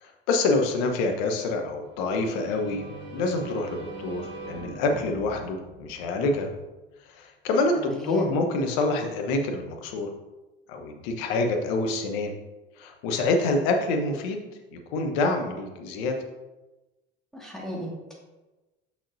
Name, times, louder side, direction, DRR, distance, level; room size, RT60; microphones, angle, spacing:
voice 1, 0.0-6.5 7.1-10.1 10.7-12.3 12.8-14.4 14.7-16.2, left 2 dB, 65° left, 3 dB, 1.1 m, -27 dB
sound 1, 1.8-6.6, right 1 dB, 20° right, 1.9 m, -41 dB
voice 2, 8.0-8.3 17.3-18.1, right 1 dB, ahead, -3 dB, 2.1 m, -34 dB
6.2 x 6.1 x 2.7 m, 1.1 s
hypercardioid pair, 70°, 30 cm